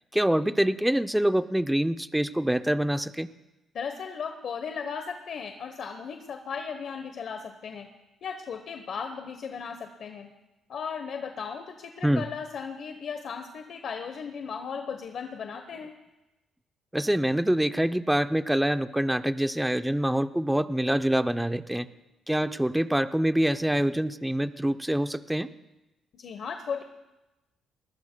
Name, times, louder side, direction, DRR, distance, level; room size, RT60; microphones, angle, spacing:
voice 1, 0.1-3.3 12.0-12.2 16.9-21.9 22.3-25.5, right 1 dB, 5° right, 12 dB, 0.5 m, -25 dB
voice 2, 3.7-7.9 8.2-10.3 10.7-15.9 26.1-26.8, left 6 dB, 60° left, 6 dB, 0.9 m, -36 dB
21.0 x 20.5 x 2.2 m, 1.0 s
cardioid pair, 90°, 0 cm